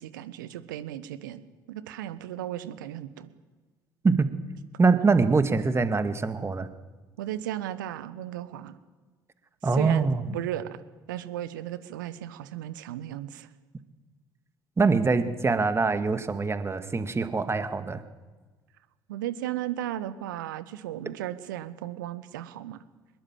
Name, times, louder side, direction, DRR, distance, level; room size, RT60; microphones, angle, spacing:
voice 1, 0.0-3.3 7.2-8.8 9.7-10.8 11.1-13.5 19.1-22.8, right 12 dB, 75° right, 14 dB, 1.3 m, -35 dB
voice 2, 4.8-6.7 9.6-10.3 14.8-18.0, right 4 dB, 25° right, 9 dB, 2.1 m, -24 dB
25.0 x 21.0 x 7.6 m, 1.3 s
figure-of-eight pair, 55°, 11 cm